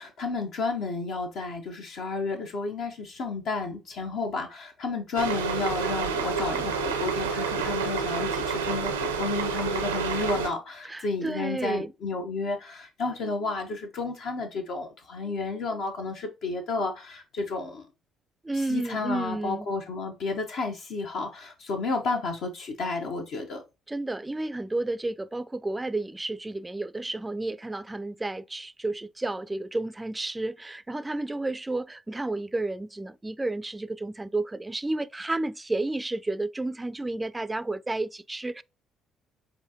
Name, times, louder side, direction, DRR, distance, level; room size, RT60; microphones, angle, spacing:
voice 1, 0.0-17.9 18.5-23.6, left 3 dB, 60° left, 0.7 m, -32 dB
sound 1, 5.2-10.5, right 5 dB, 85° right, 0.5 m, -29 dB
voice 2, 10.8-11.9 18.4-19.7 23.9-38.6, right 2 dB, 15° right, 0.3 m, -31 dB
7.1 x 2.6 x 2.7 m
hypercardioid pair, 50°, 0 cm